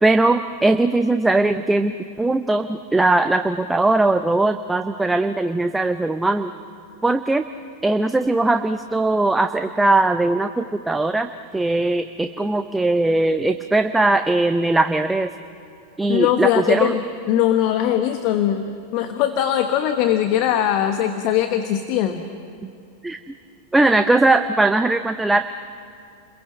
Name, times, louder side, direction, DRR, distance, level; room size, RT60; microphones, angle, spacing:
voice 1, 0.0-6.5 7.0-7.5 7.8-15.3 16.0-17.0 23.0-23.2 23.7-25.4, right 2 dB, 5° right, 9 dB, 0.7 m, -19 dB
voice 2, 16.1-17.0 17.3-22.3, left 11 dB, 45° left, 7 dB, 1.2 m, -20 dB
29.5 x 22.0 x 7.8 m, 2.7 s
figure-of-eight pair, 90°, 0 cm